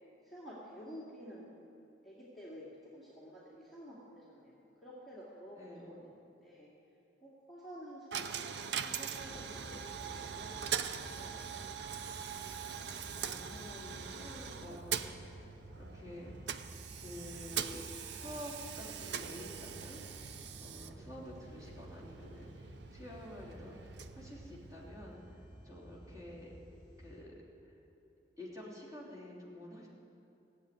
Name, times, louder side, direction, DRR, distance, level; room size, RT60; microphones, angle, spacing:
voice 1, 0.2-1.5 2.0-2.6 2.9-6.7 7.2-10.7 11.0-12.2 20.9-21.2, equal, ahead, -10 dB, 2.4 m, -51 dB
Coin (dropping), 8.1-25.0, right 7 dB, 70° right, 0.6 m, -42 dB
sound 1, 9.2-27.2, equal, 25° left, 3.5 m, -54 dB
voice 2, 13.1-15.4 15.8-16.3 16.9-20.3 20.6-25.2 25.6-26.5 27.0-27.3 28.4-29.9, left 1 dB, 20° right, -6 dB, 3.1 m, -49 dB
16.5 x 7.9 x 9.3 m, 2.7 s
head